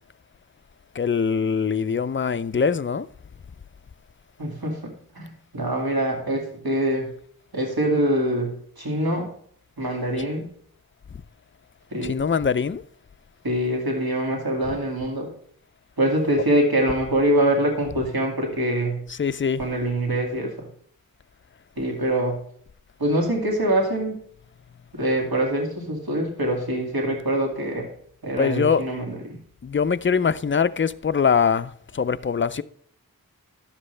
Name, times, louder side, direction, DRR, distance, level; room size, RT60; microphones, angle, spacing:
voice 1, 1.0-3.1 10.2-10.3 12.0-12.8 19.1-19.6 28.4-28.8 29.6-32.6, left 6 dB, 35° left, 0.4 m, -23 dB
voice 2, 4.4-4.8 5.1-7.1 7.5-9.3 9.8-10.4 11.9-12.1 13.4-15.3 16.0-19.0 19.6-20.7 21.8-22.4 23.0-24.1 24.9-27.9 28.2-29.4, right 1 dB, 85° right, 2.3 m, -24 dB
11.0 x 7.5 x 3.3 m
wide cardioid pair, 40°, 35 cm